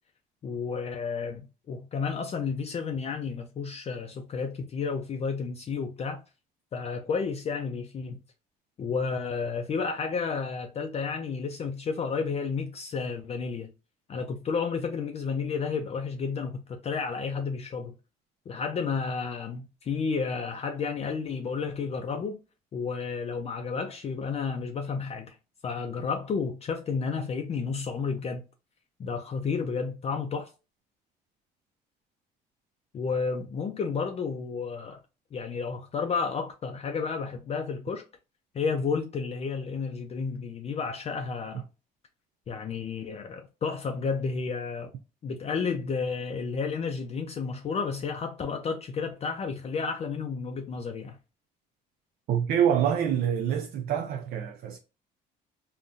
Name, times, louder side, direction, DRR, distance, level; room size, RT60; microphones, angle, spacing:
voice 1, 0.4-6.2 6.7-8.2 8.8-13.7 14.1-17.9 18.5-22.4 22.7-25.4 25.6-28.4 29.0-30.5 32.9-35.0 35.3-38.0 38.5-41.6 42.5-44.9 45.2-51.2, left 5 dB, 40° left, 0.5 m, -31 dB
voice 2, 52.3-54.8, right 9 dB, 65° right, 0.5 m, -26 dB
3.7 x 2.2 x 2.5 m
cardioid pair, 110°, 17 cm